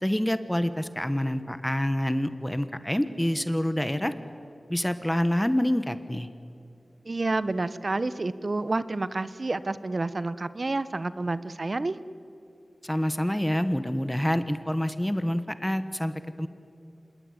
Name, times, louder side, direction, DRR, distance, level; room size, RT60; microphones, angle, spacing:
voice 1, 0.0-4.1 4.7-6.3 12.8-16.5, equal, 10° left, 11 dB, 1.2 m, -27 dB
voice 2, 7.0-12.0, right 2 dB, 55° right, 15 dB, 0.9 m, -29 dB
26.5 x 20.0 x 9.8 m, 2.6 s
wide cardioid pair, 65°, 0 cm